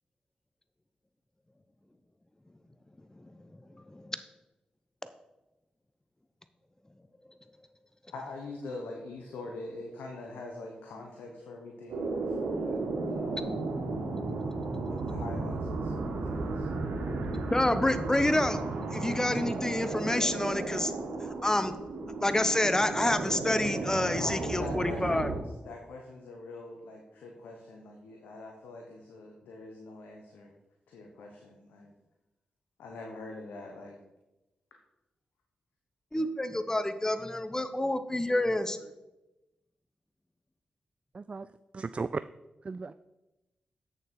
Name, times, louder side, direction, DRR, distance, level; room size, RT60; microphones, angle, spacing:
voice 1, 8.1-12.8 13.0-13.6 14.9-16.7 24.2-30.5 30.9-31.9 32.8-34.0 36.1-36.2, left 2 dB, 90° left, 1 dB, 1.1 m, -43 dB
sound 1, 11.9-25.4, right 3 dB, 90° right, 1.6 m, -34 dB
voice 2, 17.3-18.6 18.9-20.9 21.4-21.8 22.2-25.3 36.1-38.8, left 1 dB, 20° left, 11 dB, 1.0 m, -28 dB
voice 3, 41.1-41.5 41.7-42.2 42.6-42.9, right 4 dB, 40° right, 13 dB, 0.3 m, -35 dB
8.4 x 6.8 x 4.5 m, 1.0 s
supercardioid pair, 45°, 3 cm